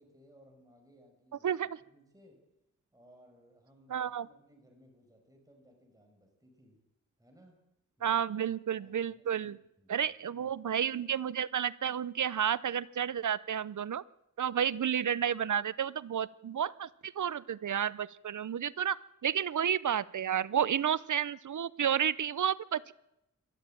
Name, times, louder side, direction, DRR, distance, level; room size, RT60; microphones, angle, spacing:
voice 1, 0.0-2.4 2.9-6.8 7.2-7.6 8.0-8.3 8.8-10.5 10.8-10.9, equal, 10° right, 2 dB, 5.5 m, -62 dB
voice 2, 3.9-4.3 8.0-9.6 9.9-14.0 14.4-22.9, right 9 dB, 75° right, 19 dB, 0.7 m, -31 dB
22.0 x 13.5 x 9.0 m, 0.86 s
wide cardioid pair, 100°, 31 cm